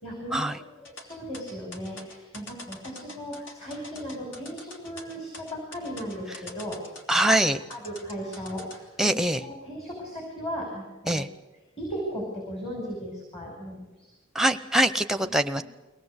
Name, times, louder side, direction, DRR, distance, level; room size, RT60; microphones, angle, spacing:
voice 1, 0.0-6.8 7.7-9.1 9.4-11.2 11.8-13.9, equal, 30° left, -1 dB, 5.7 m, -36 dB
sound 1, 0.8-8.8, left 2 dB, 70° left, 3.2 m, -45 dB
voice 2, 7.1-7.6 9.0-9.4 11.1-11.3 14.3-15.6, right 1 dB, ahead, 10 dB, 0.8 m, -23 dB
23.5 x 18.5 x 8.2 m, 1.1 s
head